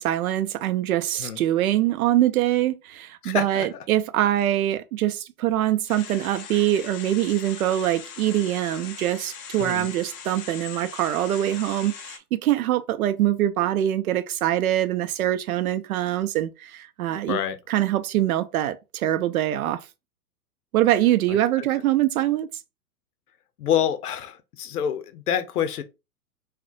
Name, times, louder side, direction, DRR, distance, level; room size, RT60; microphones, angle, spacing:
voice 1, 0.0-17.4 17.7-19.8 20.7-22.5, right 13 dB, 65° right, 0.6 m, -24 dB
voice 2, 3.2-3.8 9.6-9.9 17.3-17.6 21.3-21.7 23.6-25.8, left 9 dB, 75° left, 0.7 m, -27 dB
sound 1, 5.9-12.2, left 7 dB, 25° left, 0.4 m, -40 dB
2.4 x 2.1 x 3.8 m
hypercardioid pair, 110°, 46 cm